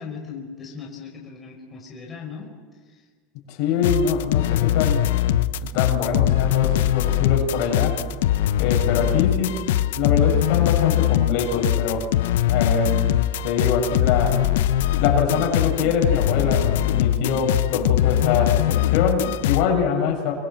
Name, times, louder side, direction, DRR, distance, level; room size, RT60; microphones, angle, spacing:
voice 1, 0.0-2.5, left 5 dB, 20° left, -1 dB, 5.2 m, -37 dB
voice 2, 3.5-5.1 5.6-8.0 8.6-9.6 9.9-12.1 12.5-13.0 13.4-14.4 15.0-20.3, left 6 dB, 60° left, 2 dB, 7.1 m, -24 dB
sound 1, 3.8-19.7, left 11 dB, 85° left, 0.9 m, -21 dB
28.5 x 23.5 x 7.7 m, 1.5 s
supercardioid pair, 140°, 0 cm